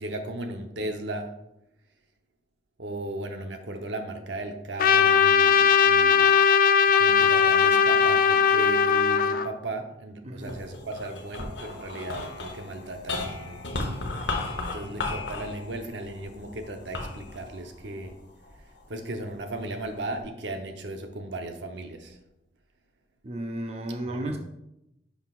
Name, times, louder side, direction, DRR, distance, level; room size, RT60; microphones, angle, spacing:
voice 1, 0.0-1.3 2.8-6.4 7.0-13.8 14.7-18.1 18.9-22.1 24.1-24.3, right 2 dB, 75° right, 5 dB, 0.8 m, -36 dB
Trumpet, 4.8-9.5, left 7 dB, 50° left, 0.4 m, -19 dB
voice 2, 10.2-10.6 23.2-24.4, right 1 dB, 35° right, 3 dB, 0.6 m, -33 dB
sound 1, 10.4-18.9 19.5-20.2, left 3 dB, 75° left, 1.0 m, -35 dB
9.9 x 5.7 x 2.4 m, 0.86 s
head